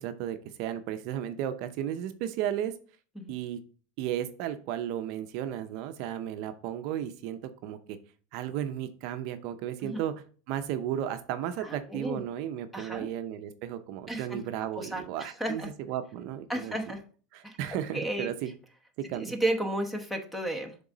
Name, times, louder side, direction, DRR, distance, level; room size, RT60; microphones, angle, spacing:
voice 1, 0.0-2.7 3.3-3.6 4.0-8.0 8.3-10.1 10.5-16.8 17.3-18.5 19.1-19.3, right 10 dB, 55° right, 9 dB, 0.6 m, -34 dB
voice 2, 11.6-12.2 12.7-13.1 14.1-14.4 14.7-15.0 15.4-15.7 16.5-17.0 17.4-17.6 17.9-18.3 19.1-20.7, right 1 dB, 5° left, 5 dB, 0.9 m, -32 dB
7.1 x 3.7 x 3.8 m, 0.40 s
supercardioid pair, 140°, 0 cm